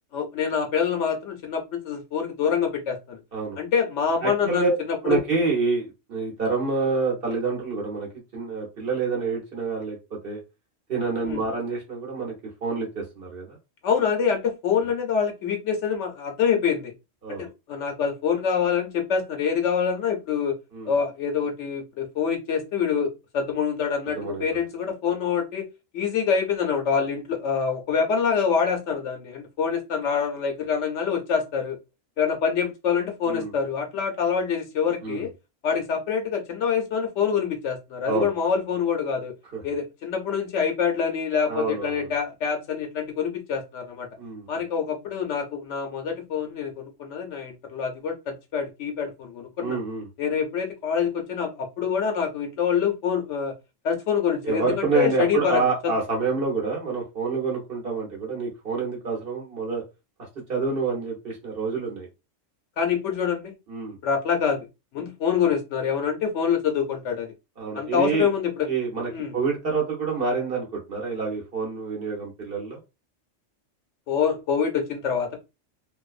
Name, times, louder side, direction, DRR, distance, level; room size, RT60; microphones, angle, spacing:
voice 1, 0.1-3.2 3.6-5.2 11.2-11.4 13.8-16.9 17.3-20.5 20.9-25.6 25.9-31.8 32.2-35.3 35.6-39.3 39.6-44.1 44.5-49.8 50.2-53.5 53.8-55.9 62.8-63.5 64.0-64.7 64.9-67.3 67.7-68.7 69.1-69.3 74.1-75.4, left 6 dB, 70° left, 3 dB, 0.9 m, -26 dB
voice 2, 4.2-4.8 5.0-10.4 10.9-12.3 12.6-13.6 17.2-17.4 20.7-20.9 24.1-24.4 33.2-33.5 35.0-35.3 38.1-38.3 39.5-39.6 41.5-42.1 44.2-44.6 49.6-50.1 54.4-59.8 60.5-62.1 63.7-64.0 67.6-68.3 68.7-72.8, right 4 dB, 50° right, -2 dB, 1.1 m, -27 dB
2.6 x 2.2 x 2.4 m, 0.26 s
omnidirectional pair, 1.3 m